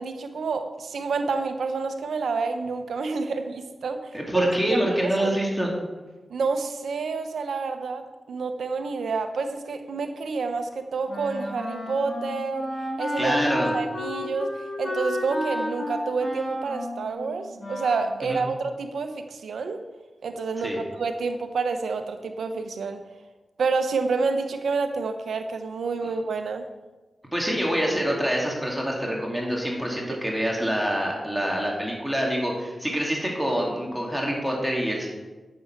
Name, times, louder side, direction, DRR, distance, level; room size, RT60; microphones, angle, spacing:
voice 1, 0.0-5.3 6.3-12.7 13.0-19.8 20.2-23.0 23.6-26.6, right 4 dB, 85° right, 7 dB, 0.9 m, -28 dB
voice 2, 4.1-5.7 13.2-13.7 18.2-18.4 20.6-20.8 27.3-35.1, equal, 5° right, -2 dB, 2.7 m, -26 dB
Wind instrument woodwind instrument, 11.1-18.2, left 1 dB, 40° left, 3.2 m, -32 dB
8.5 x 6.9 x 5.9 m, 1.2 s
cardioid pair, 45°, 0 cm